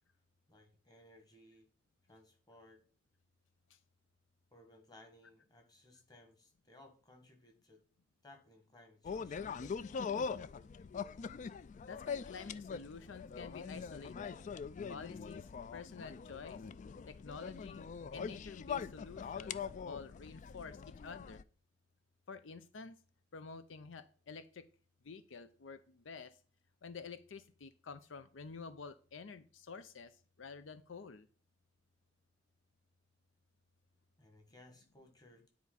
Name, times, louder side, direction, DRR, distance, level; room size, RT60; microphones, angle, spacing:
voice 1, 0.5-1.7 2.1-2.8 4.5-7.8 8.2-9.8 34.2-35.5, left 1 dB, 20° left, 4 dB, 1.6 m, -61 dB
sound 1, 9.0-21.4, left 6 dB, 40° left, 0.3 m, -43 dB
voice 2, 11.9-14.4 14.9-16.6 17.1-17.9 18.1-21.4 22.3-23.0 23.3-24.7 25.0-26.4 26.8-31.3, left 5 dB, 80° left, 12 dB, 0.6 m, -49 dB
9.6 x 4.6 x 4.0 m, 0.40 s
head